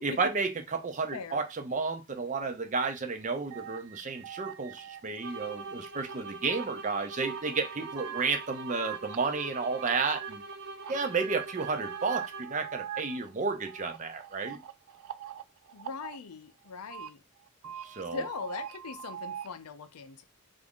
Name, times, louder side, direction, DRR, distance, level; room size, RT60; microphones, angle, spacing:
voice 1, 0.0-10.4 10.9-14.6 17.8-18.2, right 4 dB, 35° right, 0.5 m, -32 dB
voice 2, 1.1-1.4 15.7-17.2 18.1-20.2, left 4 dB, 85° left, 0.5 m, -40 dB
sound 1, 3.5-5.8 6.1-6.9 7.2-10.5 10.8-16.2 16.7-17.1 17.5-19.5, right 10 dB, 90° right, 0.4 m, -43 dB
sound 2, 5.2-12.7, right 3 dB, 65° right, 1.1 m, -43 dB
3.5 x 2.5 x 3.5 m
head